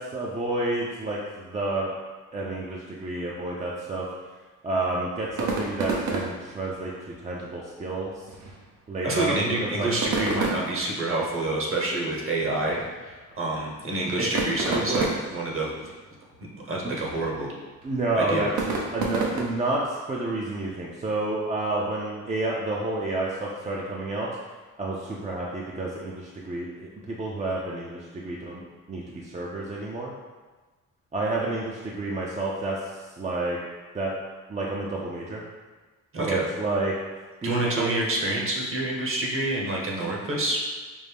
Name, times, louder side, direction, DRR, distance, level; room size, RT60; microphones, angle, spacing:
voice 1, 0.0-1.9 2.3-4.1 4.6-6.9 7.2-8.1 8.9-9.9 14.2-14.3 14.7-15.1 16.8-16.9 17.8-24.3 24.8-28.6 28.9-30.1 31.1-33.6 33.9-34.1 34.5-35.4 36.2-37.0 37.4-37.9, right 2 dB, 25° right, -4 dB, 0.5 m, -29 dB
sound 1, 5.2-19.8, right 3 dB, 70° right, 0.8 m, -33 dB
voice 2, 9.0-15.9 16.7-17.5 18.2-18.5 36.1-36.4 37.4-40.6, right 2 dB, 45° right, -2 dB, 1.1 m, -27 dB
5.2 x 2.1 x 3.4 m, 1.3 s
cardioid pair, 90°, 30 cm